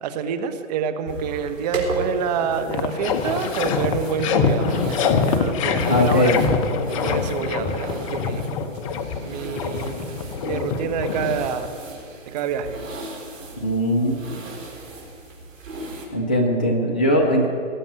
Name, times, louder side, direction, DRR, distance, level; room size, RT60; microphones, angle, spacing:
voice 1, 0.0-6.3 6.9-8.5 9.2-10.1 10.4-11.7 12.3-12.8, right 7 dB, 30° right, 10 dB, 1.1 m, -27 dB
sound 1, 1.0-16.1, right 2 dB, 75° right, 4.4 m, -37 dB
sound 2, 2.0-2.1 2.4-11.8, left 5 dB, 25° left, 0.8 m, -25 dB
voice 2, 5.9-6.4 13.6-14.4 16.1-17.5, equal, 10° left, 2 dB, 0.4 m, -20 dB
18.0 x 7.0 x 9.9 m, 2.5 s
hypercardioid pair, 140°, 39 cm